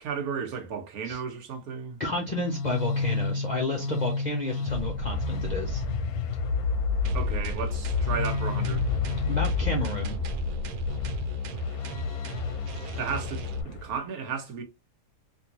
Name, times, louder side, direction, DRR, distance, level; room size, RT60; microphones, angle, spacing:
voice 1, 0.0-2.0 7.1-8.9 13.0-14.6, right 6 dB, 65° right, 1.3 m, -34 dB
voice 2, 2.0-5.8 9.3-10.2, left 2 dB, 55° left, 0.5 m, -31 dB
sound 1, 2.1-14.0, left 4 dB, 70° left, 1.0 m, -30 dB
sound 2, 7.0-13.6, left 2 dB, 85° right, 1.2 m, -34 dB
3.6 x 2.7 x 2.8 m
omnidirectional pair, 1.8 m